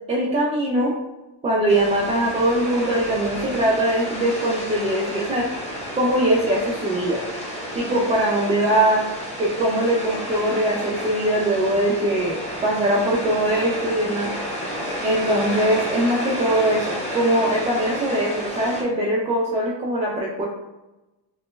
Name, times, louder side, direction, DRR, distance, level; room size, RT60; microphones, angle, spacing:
voice 1, 0.1-0.9 1.4-5.5 5.9-7.2 7.7-9.1 9.4-14.3 15.0-20.5, right 1 dB, 15° right, -4 dB, 0.3 m, -21 dB
sound 1, 1.7-18.8, equal, 15° left, 0.9 m, -31 dB
3.0 x 2.1 x 3.1 m, 1.0 s
cardioid pair, 110°, 45 cm